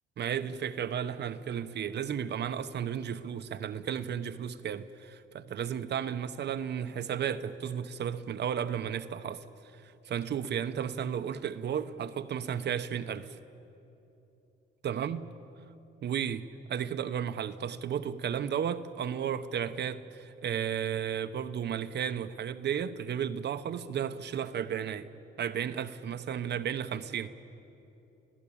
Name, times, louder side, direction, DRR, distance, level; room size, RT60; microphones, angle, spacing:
voice 1, 0.2-9.4 9.7-13.4 14.8-15.3 16.0-25.1 25.4-27.3, right 8 dB, 60° right, 0.9 m, -33 dB
28.5 x 16.0 x 8.6 m
cardioid pair, 90°, 20 cm